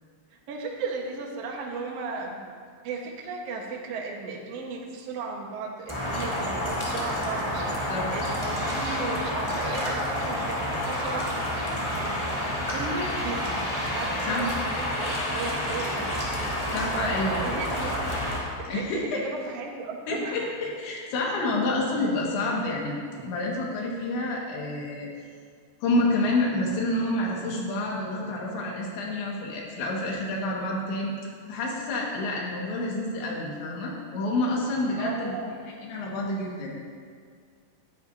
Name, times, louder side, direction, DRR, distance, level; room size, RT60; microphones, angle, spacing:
voice 1, 0.5-2.4 2.8-11.4 11.9-12.3 12.7-16.1 16.9-18.1 18.7-20.5 35.0-35.5, right 4 dB, 80° right, -1 dB, 1.4 m, -35 dB
sound 1, 5.9-18.4, equal, 10° left, 1.8 m, -29 dB
voice 2, 16.7-17.4 18.7-19.2 20.1-23.0 23.2-25.1 25.8-31.1 31.5-35.4 35.8-36.8, left 2 dB, 85° left, -3 dB, 4.2 m, -28 dB
19.5 x 10.5 x 2.8 m, 2.1 s
omnidirectional pair, 5.1 m